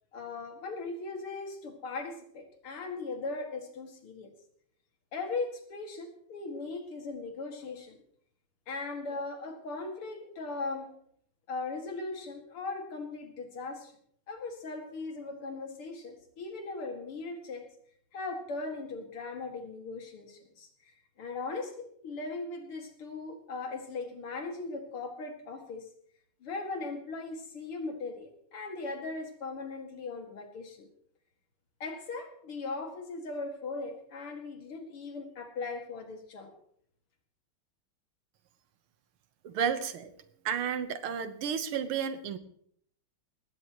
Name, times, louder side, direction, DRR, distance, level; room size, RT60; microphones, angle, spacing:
voice 1, 0.1-4.3 5.1-8.0 8.7-11.0 11.5-13.9 14.3-17.7 18.1-25.9 26.4-30.9 31.8-36.5, left 3 dB, 90° left, 4 dB, 3.0 m, -39 dB
voice 2, 39.4-40.1 40.5-42.4, right 7 dB, 90° right, 11 dB, 1.9 m, -32 dB
19.0 x 16.0 x 3.0 m, 0.64 s
omnidirectional pair, 2.3 m